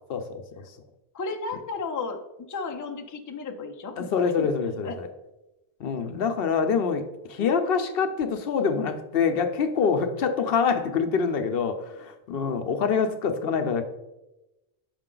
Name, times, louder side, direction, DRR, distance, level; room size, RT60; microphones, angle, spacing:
voice 1, 0.1-0.6 4.0-5.1 5.8-13.8, left 6 dB, 70° left, 8 dB, 0.8 m, -25 dB
voice 2, 1.1-2.2 2.5-4.5 4.8-5.0 7.4-7.8, left 4 dB, 25° left, 3 dB, 0.4 m, -34 dB
6.5 x 5.1 x 3.8 m, 0.99 s
omnidirectional pair, 1.0 m